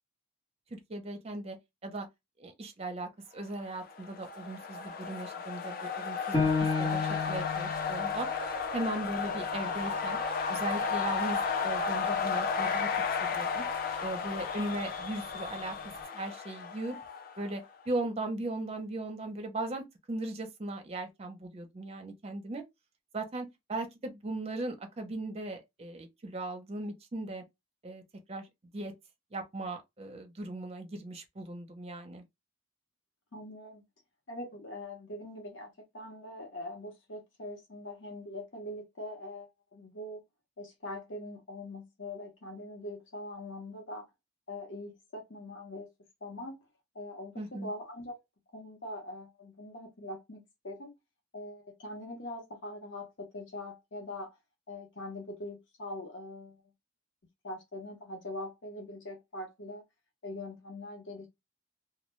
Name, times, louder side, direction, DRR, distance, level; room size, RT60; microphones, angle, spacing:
voice 1, 0.7-1.6 1.8-2.1 2.4-6.4 6.8-8.3 8.7-10.2 10.5-12.9 13.2-13.6 14.0-15.8 16.1-17.0 17.4-22.6 23.1-27.4 27.8-28.0 28.3-28.5 28.7-28.9 29.3-32.2 47.4-47.7, right 2 dB, 35° right, 0.6 m, -38 dB
sound 1, 3.8-17.6, left 5 dB, 50° left, 0.4 m, -33 dB
Piano, 6.3-11.5 12.0-12.1 12.7-13.2, left 4 dB, 30° left, 0.9 m, -34 dB
voice 2, 33.3-33.8 34.3-40.2 40.6-44.1 44.5-45.9 46.2-46.7 46.9-48.1 48.5-51.0 51.3-54.4 54.7-56.6 57.4-59.8 60.2-61.3, left 1 dB, 85° left, 0.9 m, -42 dB
2.2 x 2.2 x 3.0 m
head